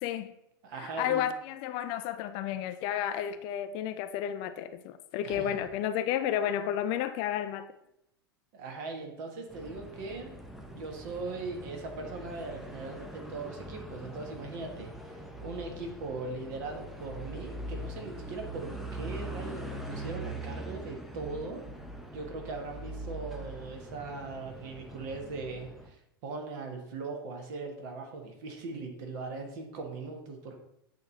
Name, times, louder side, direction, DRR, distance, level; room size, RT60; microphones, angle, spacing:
voice 1, 0.0-0.3 0.8-7.7, left 10 dB, 40° left, 0.3 m, -32 dB
voice 2, 0.6-1.3 5.2-5.6 8.5-10.4 10.7-14.9 15.4-21.6 22.1-30.6, right 3 dB, 50° right, 1.3 m, -40 dB
sound 1, 9.5-25.9, right 1 dB, ahead, 0.7 m, -42 dB
8.0 x 3.1 x 3.9 m
figure-of-eight pair, 90°, 13 cm